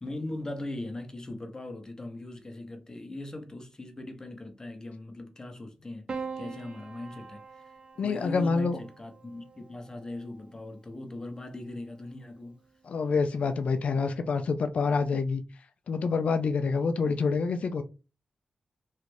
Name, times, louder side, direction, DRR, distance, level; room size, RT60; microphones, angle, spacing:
voice 1, 0.0-6.1 6.4-7.7 8.0-12.6, left 2 dB, 30° left, 0.8 m, -40 dB
Piano, 6.1-10.6 11.8-12.4, right 5 dB, 50° right, 0.5 m, -43 dB
voice 2, 8.0-8.8 12.8-15.4 15.9-17.8, left 4 dB, 70° left, 0.4 m, -27 dB
3.1 x 2.4 x 3.2 m
cardioid pair, 55°, 2 cm